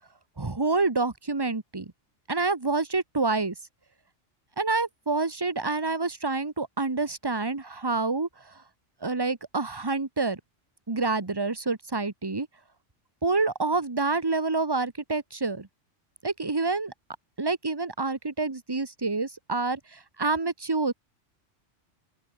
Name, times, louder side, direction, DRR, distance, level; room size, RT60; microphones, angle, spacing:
voice 1, 0.4-1.9 2.3-3.5 4.6-8.6 9.0-10.4 10.9-12.5 13.2-15.7 16.2-16.9 17.4-20.9, right 3 dB, 20° right, 1.3 m, -27 dB
open air
omnidirectional pair, 1.3 m